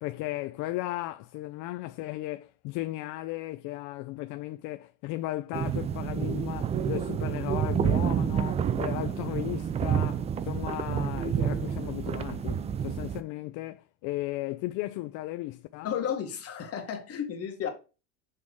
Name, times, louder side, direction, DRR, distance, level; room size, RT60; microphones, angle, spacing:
voice 1, 0.0-15.9, left 17 dB, 55° left, 0.5 m, -36 dB
sound 1, 5.5-13.2, right 8 dB, 20° right, 0.3 m, -29 dB
voice 2, 15.8-17.7, left 8 dB, 40° left, 1.8 m, -33 dB
6.5 x 3.6 x 4.6 m
supercardioid pair, 125°, 37 cm